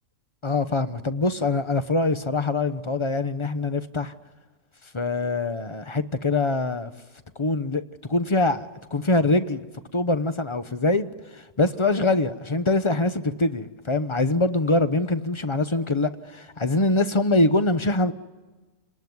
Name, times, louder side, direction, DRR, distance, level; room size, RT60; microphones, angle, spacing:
voice 1, 0.4-4.1 4.9-6.9 7.4-7.8 8.1-9.7 9.9-11.1 11.6-18.1, left 2 dB, 25° left, 11 dB, 0.7 m, -23 dB
30.0 x 19.5 x 9.5 m, 1.3 s
omnidirectional pair, 1.7 m